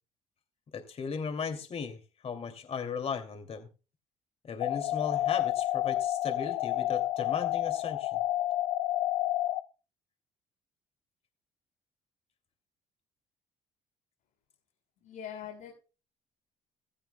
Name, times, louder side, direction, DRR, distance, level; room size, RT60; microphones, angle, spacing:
voice 1, 0.7-3.7 4.4-8.2, left 6 dB, 45° left, 7 dB, 2.6 m, -37 dB
sound 1, 4.6-9.6, left 14 dB, 85° left, 0.8 m, -30 dB
voice 2, 15.0-15.7, left 9 dB, 70° left, 1 dB, 6.3 m, -42 dB
15.5 x 15.5 x 2.2 m, 0.34 s
supercardioid pair, 70°, 14 cm